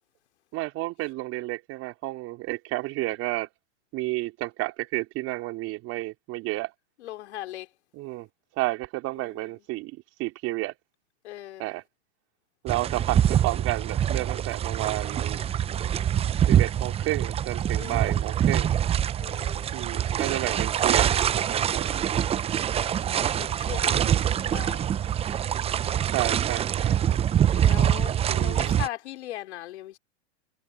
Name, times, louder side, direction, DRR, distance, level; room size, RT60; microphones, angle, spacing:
voice 1, 0.5-3.5 3.9-6.7 7.9-8.3 8.6-9.9 10.2-10.7 11.6-11.8 12.6-15.4 16.5-18.7 19.7-21.9 23.8-24.2 26.1-27.2 28.3-28.8, right 20 dB, 40° right, 4.2 m, -31 dB
voice 2, 7.0-7.7 9.2-9.3 11.2-11.6 17.8-18.2 19.2-19.7 22.9-24.9 27.5-30.0, left 14 dB, 65° left, 3.8 m, -39 dB
sound 1, 12.7-28.9, right 10 dB, 15° right, 0.6 m, -25 dB
hypercardioid pair, 115°, 35 cm